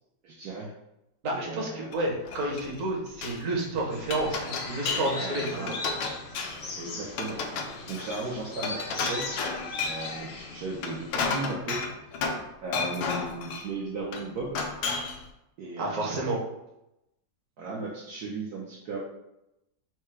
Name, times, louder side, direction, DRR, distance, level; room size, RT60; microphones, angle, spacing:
voice 1, 0.2-0.7 1.3-1.9 5.1-5.7 6.8-7.4 7.9-9.4 9.8-11.8 12.6-14.6 15.6-16.3 17.6-19.0, right 3 dB, 65° right, -4 dB, 1.2 m, -36 dB
voice 2, 1.2-5.7 15.8-16.4, right 2 dB, 50° right, -2 dB, 1.3 m, -30 dB
Glass, 1.9-3.4 3.8-5.2 5.4-6.7 7.1-10.1 10.7-12.5 12.7-13.7 14.1-15.2, left 4 dB, 90° left, 1.3 m, -32 dB
sound 1, 3.9-11.5, left 3 dB, 70° left, 0.6 m, -39 dB
4.4 x 2.2 x 4.7 m, 0.87 s
omnidirectional pair, 2.0 m